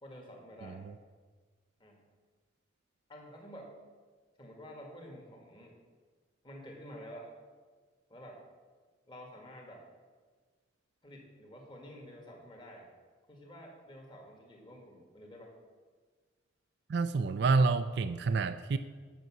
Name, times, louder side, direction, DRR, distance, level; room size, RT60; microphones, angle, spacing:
voice 1, 0.0-0.8 1.8-2.0 3.1-3.8 4.4-5.8 6.4-7.3 8.1-8.4 9.1-9.8 11.0-12.9 13.3-15.6, equal, 25° left, 0 dB, 1.7 m, -50 dB
voice 2, 16.9-18.8, right 4 dB, 55° right, 11 dB, 0.4 m, -28 dB
9.3 x 6.6 x 6.1 m, 1.5 s
head